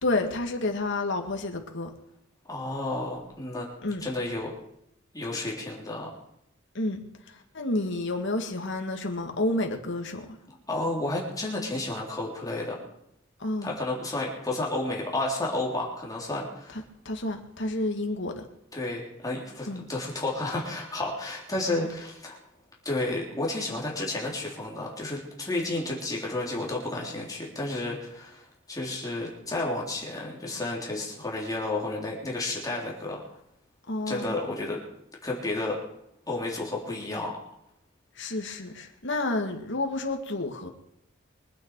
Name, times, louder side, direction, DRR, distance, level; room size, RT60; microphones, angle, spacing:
voice 1, 0.0-1.9 3.8-4.0 6.7-7.0 7.3-10.4 13.4-13.7 16.7-18.4 19.7-19.9 33.9-34.4 38.2-40.7, left 2 dB, 65° left, 2.2 m, -30 dB
voice 2, 2.5-3.7 4.0-4.5 5.1-6.1 10.7-12.8 13.6-16.8 18.7-22.4 22.9-28.4 28.7-33.2 34.1-34.8 35.2-35.8 36.3-37.3, left 2 dB, 20° left, 3.6 m, -31 dB
24.0 x 9.1 x 4.8 m
head